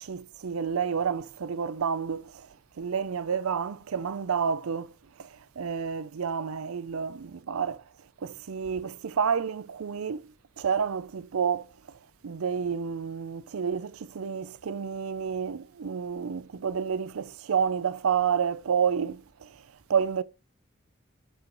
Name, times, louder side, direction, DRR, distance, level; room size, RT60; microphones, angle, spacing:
voice 1, 0.0-2.5 2.8-4.9 5.2-7.8 8.2-11.7 12.2-19.5 19.9-20.2, right 6 dB, 90° right, 0.5 m, -30 dB
7.9 x 4.6 x 3.9 m
head